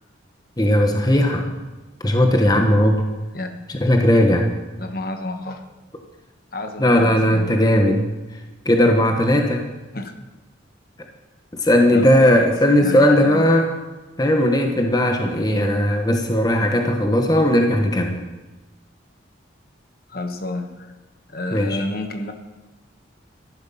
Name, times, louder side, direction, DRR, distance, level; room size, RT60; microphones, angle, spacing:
voice 1, 0.6-1.5 2.0-3.0 3.8-4.5 6.8-8.0 8.6-9.6 11.6-13.7 14.2-18.2 21.5-21.8, left 1 dB, 20° left, 4 dB, 1.0 m, -17 dB
voice 2, 3.3-3.7 4.8-5.6 6.5-7.5 9.9-10.1 11.9-13.5 20.1-20.9 21.3-22.3, left 2 dB, 50° left, 5 dB, 1.2 m, -30 dB
13.5 x 11.5 x 5.6 m, 1.2 s
head